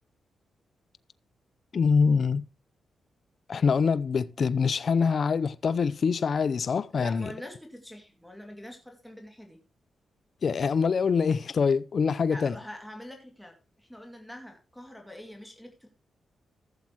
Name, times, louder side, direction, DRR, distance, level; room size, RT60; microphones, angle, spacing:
voice 1, 1.7-2.4 3.5-7.3 10.4-12.6, left 5 dB, 60° left, 0.5 m, -24 dB
voice 2, 6.9-9.6 12.3-15.9, left 1 dB, 5° left, 2.3 m, -44 dB
15.5 x 7.3 x 3.0 m
cardioid pair, 65°, 0 cm